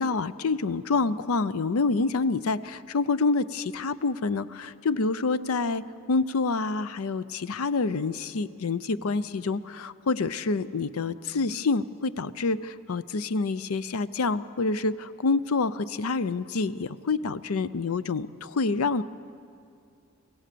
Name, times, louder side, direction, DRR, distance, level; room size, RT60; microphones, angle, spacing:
voice 1, 0.0-19.0, left 3 dB, 80° left, 15 dB, 0.6 m, -27 dB
24.5 x 16.0 x 6.8 m, 2.4 s
head